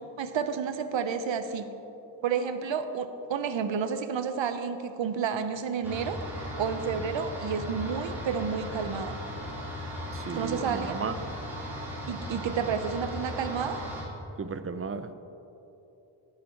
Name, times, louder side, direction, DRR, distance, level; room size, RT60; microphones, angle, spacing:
voice 1, 0.0-1.7 2.2-6.2 6.6-9.2 10.3-11.0 12.1-13.8, right 6 dB, 70° right, 9 dB, 0.8 m, -30 dB
sound 1, 5.8-14.0, equal, 5° right, 2.4 m, -37 dB
voice 2, 10.1-11.3 14.4-15.1, right 5 dB, 30° right, 11 dB, 0.4 m, -35 dB
11.0 x 9.6 x 4.5 m, 3.0 s
wide cardioid pair, 140°, 46 cm